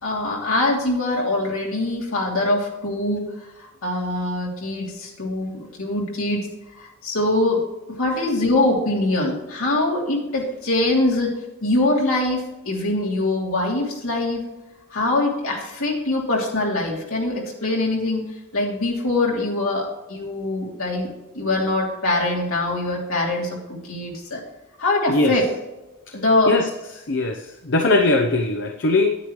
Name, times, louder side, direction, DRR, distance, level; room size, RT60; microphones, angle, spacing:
voice 1, 0.0-6.5 6.7-7.6 8.0-14.4 14.9-18.3 18.5-24.4 24.8-25.4 26.1-26.5, left 2 dB, 70° left, -2 dB, 3.0 m, -23 dB
voice 2, 27.1-29.2, left 2 dB, 55° left, 4 dB, 0.7 m, -20 dB
9.8 x 9.7 x 3.1 m, 1.0 s
head